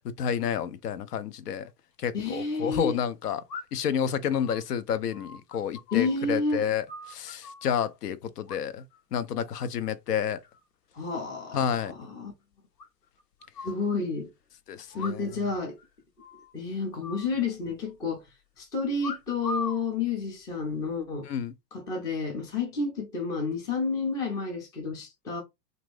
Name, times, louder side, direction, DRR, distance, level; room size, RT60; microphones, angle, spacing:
voice 1, 0.2-1.7 2.0-3.4 3.7-8.8 9.1-10.4 11.5-11.9 14.7-15.3 21.3-21.5, left 8 dB, 65° left, 0.6 m, -30 dB
sound 1, 1.7-1.8 3.5-3.9 4.4-6.4 6.6-7.7 8.5-9.0 9.3-9.7 10.1-10.6 10.9-11.0 11.2-11.3 11.6-11.7 12.0-12.1 12.8-13.8 14.9-15.5 15.8-15.9 16.2-16.5 17.0-17.9 19.0-19.9 20.6-21.0, left 3 dB, 85° left, 1.1 m, -40 dB
voice 2, 2.1-3.0 5.9-6.6 10.9-12.3 13.6-14.3 15.0-15.8 16.5-18.2 18.6-21.3 21.7-25.4, left 4 dB, 10° left, 0.4 m, -30 dB
2.9 x 2.6 x 3.2 m
hypercardioid pair, 110°, 50 cm